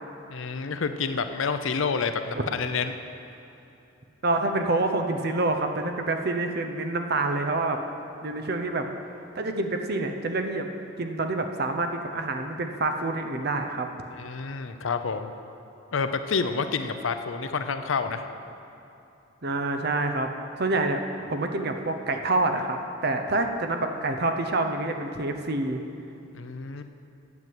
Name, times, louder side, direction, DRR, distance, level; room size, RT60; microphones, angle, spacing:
voice 1, 0.3-3.0 14.2-15.3 15.9-18.2 26.3-26.8, left 5 dB, 70° left, 9 dB, 0.6 m, -28 dB
voice 2, 4.2-7.8 8.2-8.9 9.3-10.7 11.0-13.9 19.4-20.3 20.6-21.0 21.3-25.8, right 2 dB, 50° right, 5 dB, 0.8 m, -27 dB
9.5 x 7.4 x 7.8 m, 2.8 s
head